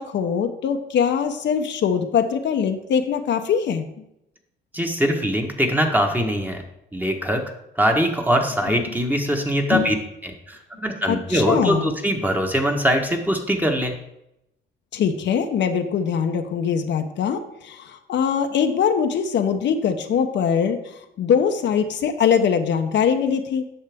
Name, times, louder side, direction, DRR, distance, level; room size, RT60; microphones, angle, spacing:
voice 1, 0.0-3.9 8.7-8.8 9.7-9.9 11.1-11.9 14.9-23.6, left 7 dB, 65° left, 6 dB, 0.8 m, -22 dB
voice 2, 4.7-6.6 6.9-7.4 7.8-9.9 10.2-13.9, equal, 10° right, 3 dB, 1.3 m, -22 dB
9.7 x 6.5 x 3.6 m, 0.84 s
cardioid pair, 90°, 20 cm